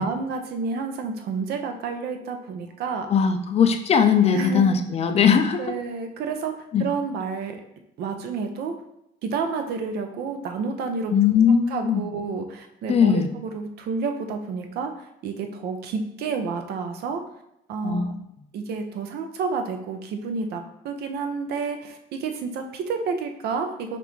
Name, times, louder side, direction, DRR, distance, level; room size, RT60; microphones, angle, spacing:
voice 1, 0.0-3.1 4.3-4.8 5.6-7.6 8.0-8.7 9.2-11.1 11.7-17.2 17.7-18.2 18.5-24.0, right 4 dB, 70° right, 6 dB, 0.6 m, -30 dB
voice 2, 3.1-5.7 6.7-6.9 11.1-12.0 12.9-13.3 17.8-18.2, left 7 dB, 40° left, 7 dB, 0.4 m, -19 dB
5.2 x 2.5 x 3.1 m, 0.80 s
cardioid pair, 110°, 17 cm